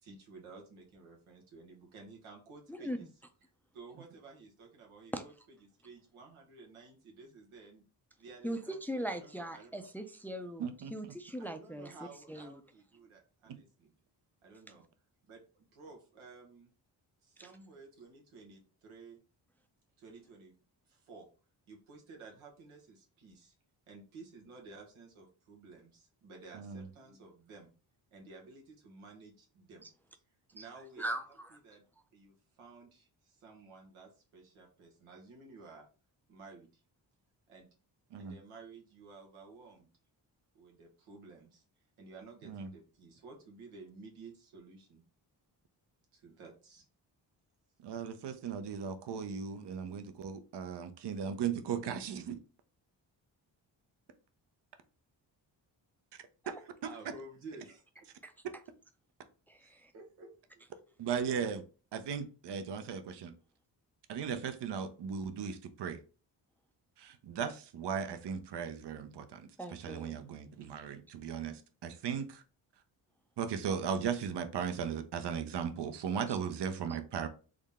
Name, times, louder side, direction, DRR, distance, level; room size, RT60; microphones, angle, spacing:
voice 1, 0.0-3.0 3.7-5.3 5.6-7.8 8.2-9.9 11.4-13.9 14.4-14.8 15.3-16.7 17.2-19.2 20.0-20.5 20.9-21.3 21.7-23.5 23.9-27.7 28.1-29.9 30.5-31.2 31.5-31.8 32.1-35.9 36.3-36.8 37.5-37.7 38.2-39.9 40.5-41.6 42.0-45.0 46.1-46.8 48.3-48.5 56.6-57.8 59.6-60.8, right 3 dB, 90° right, 1.2 m, -53 dB
voice 2, 8.4-11.9 12.3-12.6 17.4-17.5 30.6-30.7 31.0-31.5 56.4-56.6 58.2-58.3 59.5-59.9 69.6-70.2 76.3-76.4, right 1 dB, 5° left, 0.5 m, -40 dB
voice 3, 10.6-10.9 13.5-13.6 26.5-26.8 38.1-38.3 42.4-42.7 47.8-52.4 56.5-56.6 61.0-61.6 61.9-63.3 64.1-66.0 67.0-72.4 73.4-77.3, right 7 dB, 60° right, 0.7 m, -37 dB
3.7 x 2.1 x 3.5 m
supercardioid pair, 50°, 48 cm